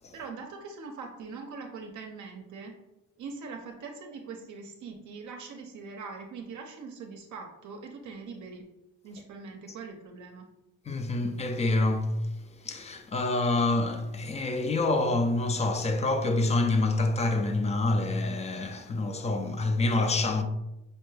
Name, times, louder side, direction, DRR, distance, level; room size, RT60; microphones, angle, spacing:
voice 1, 0.1-2.7 3.2-8.6 9.0-10.5, right 4 dB, 60° right, 0.6 m, -42 dB
voice 2, 10.9-12.2 12.6-20.4, left 2 dB, 20° left, 0.3 m, -27 dB
5.2 x 2.2 x 3.2 m
cardioid pair, 125°, 33 cm